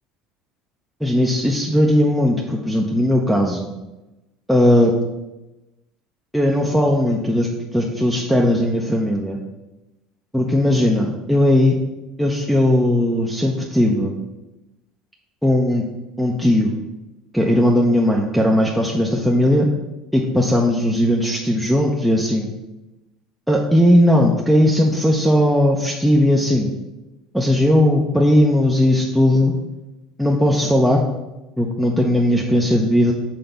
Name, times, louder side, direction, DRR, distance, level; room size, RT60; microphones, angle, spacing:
voice 1, 1.0-3.7 4.5-4.9 6.3-9.4 10.3-11.8 12.2-14.1 15.4-15.8 16.2-16.7 17.3-19.7 20.1-22.5 23.5-26.7 27.3-29.5 30.2-31.0 31.6-33.1, left 1 dB, ahead, -2 dB, 0.7 m, -17 dB
6.0 x 3.4 x 5.2 m, 1.0 s
supercardioid pair, 90°, 0 cm